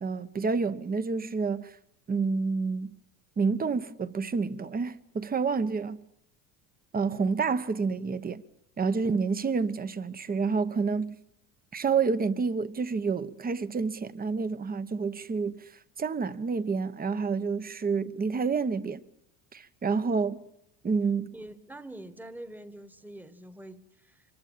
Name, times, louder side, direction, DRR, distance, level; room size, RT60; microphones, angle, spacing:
voice 1, 0.0-1.8 2.1-2.9 3.4-6.0 6.9-8.4 8.8-11.2 11.7-15.7 16.0-19.0 19.5-20.4 20.8-21.3, right 5 dB, 20° right, 1.0 m, -29 dB
voice 2, 21.3-24.2, right 1 dB, 5° right, 1.5 m, -45 dB
25.0 x 23.0 x 7.5 m
supercardioid pair, 115°, 42 cm